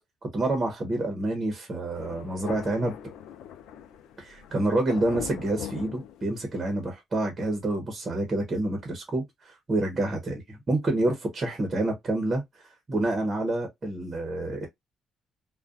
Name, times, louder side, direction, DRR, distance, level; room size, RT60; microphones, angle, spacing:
voice 1, 0.2-2.9 4.2-14.7, right 2 dB, 35° right, 0.8 m, -28 dB
Thunder, 1.9-6.7, left 9 dB, 90° left, 0.4 m, -41 dB
2.3 x 2.2 x 2.4 m
cardioid pair, 90°, 0 cm